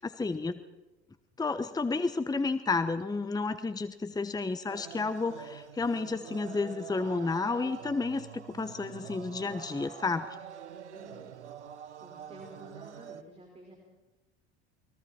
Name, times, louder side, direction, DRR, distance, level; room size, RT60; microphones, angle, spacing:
voice 1, 0.0-0.6 1.4-10.3, left 3 dB, 10° left, 11 dB, 1.1 m, -31 dB
sound 1, 4.7-13.2, right 9 dB, 80° right, 1.2 m, -46 dB
voice 2, 10.9-11.3 11.7-13.8, right 1 dB, 20° right, 1 dB, 5.1 m, -51 dB
29.0 x 22.5 x 4.4 m, 1.1 s
hypercardioid pair, 70°, 34 cm